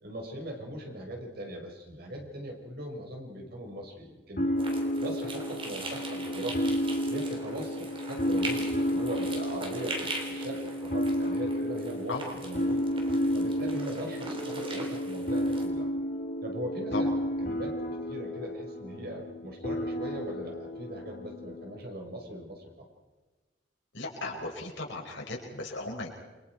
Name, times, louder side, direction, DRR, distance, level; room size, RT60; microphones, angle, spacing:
voice 1, 0.0-4.5 5.0-6.7 7.1-12.8 13.3-15.9 16.4-17.1 17.4-17.7 18.1-22.7, equal, 55° right, 1 dB, 5.2 m, -40 dB
sound 1, 4.4-21.8, equal, 50° left, 3.9 m, -32 dB
sound 2, 4.6-15.7, right 2 dB, 30° right, 3.7 m, -41 dB
voice 2, 23.9-26.1, left 2 dB, 80° left, -1 dB, 5.5 m, -36 dB
29.5 x 24.0 x 4.7 m, 1.3 s
head